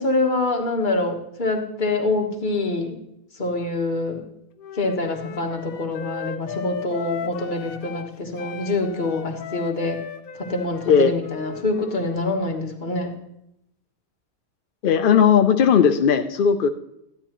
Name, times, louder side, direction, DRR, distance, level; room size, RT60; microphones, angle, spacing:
voice 1, 0.0-3.0 3.3-4.2 4.7-10.0 10.4-13.1, left 2 dB, 35° left, 2 dB, 1.3 m, -25 dB
Wind instrument woodwind instrument, 4.6-8.1 8.4-12.2, left 8 dB, 85° left, 1.1 m, -36 dB
voice 2, 14.8-16.7, left 7 dB, 70° left, 7 dB, 0.5 m, -17 dB
12.5 x 9.7 x 3.0 m, 0.78 s
omnidirectional pair, 1.5 m